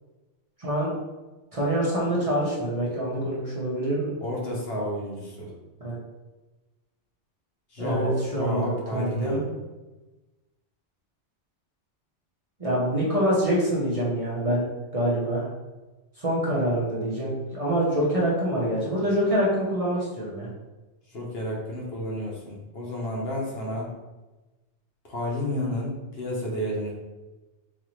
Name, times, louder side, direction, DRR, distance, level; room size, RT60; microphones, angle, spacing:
voice 1, 0.6-0.9 1.5-4.1 5.8-5.9 7.8-9.5 12.6-14.7 14.9-15.5 16.2-20.5, right 1 dB, 35° right, -6 dB, 0.8 m, -25 dB
voice 2, 4.2-5.5 7.7-9.4 21.1-23.9 25.0-26.9, left 1 dB, 60° left, -3 dB, 1.1 m, -31 dB
4.1 x 2.6 x 3.1 m, 1.1 s
omnidirectional pair, 1.2 m